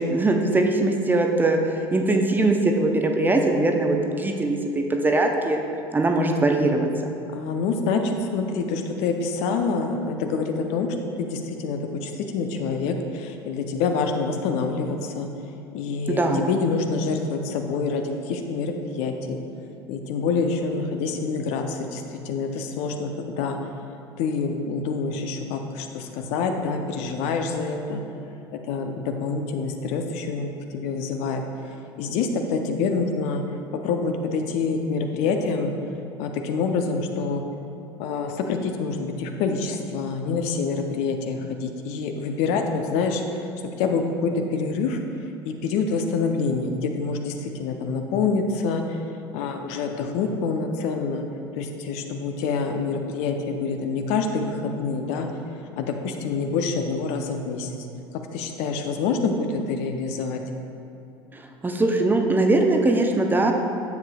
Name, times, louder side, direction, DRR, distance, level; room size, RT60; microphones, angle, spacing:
voice 1, 0.0-5.6 5.9-7.2 16.1-16.5 61.3-63.5, right 2 dB, 15° right, 3 dB, 0.7 m, -21 dB
voice 2, 7.3-10.9 11.2-15.3 15.7-19.4 19.9-23.6 24.2-28.0 28.6-33.4 33.7-35.7 36.2-37.4 38.0-43.5 43.8-45.0 45.5-49.0 49.3-51.2 51.5-55.3 55.8-57.9 58.3-60.4, left 4 dB, 50° left, 5 dB, 0.6 m, -26 dB
10.5 x 7.3 x 2.3 m, 2.8 s
figure-of-eight pair, 70°, 14 cm